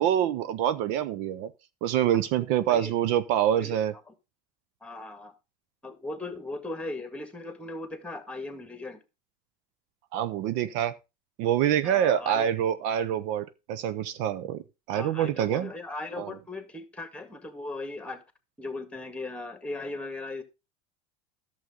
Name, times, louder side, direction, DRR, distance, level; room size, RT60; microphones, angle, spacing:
voice 1, 0.0-1.5 1.8-3.9 10.1-10.9 11.4-14.6 14.9-15.7 16.2-16.3, right 10 dB, 65° right, 0.7 m, -26 dB
voice 2, 4.8-5.3 5.8-9.0 11.8-12.5 14.9-18.2 18.6-20.4, left 2 dB, 5° left, 1.9 m, -38 dB
11.0 x 7.2 x 3.7 m
supercardioid pair, 100°, 20 cm